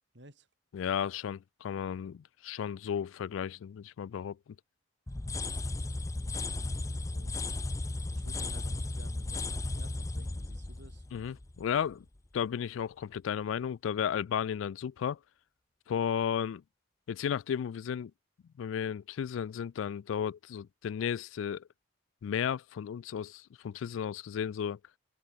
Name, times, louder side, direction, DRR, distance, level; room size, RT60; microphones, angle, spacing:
voice 1, 0.1-0.5 6.3-7.7 8.1-11.1, right 1 dB, 60° right, 6.9 m, -54 dB
voice 2, 0.7-4.4 11.1-12.1 12.3-15.2 15.9-16.6 17.1-18.1 18.6-21.7 22.2-24.8, left 8 dB, 80° left, 0.3 m, -34 dB
sound 1, 5.1-11.9, left 2 dB, 15° left, 0.5 m, -35 dB
head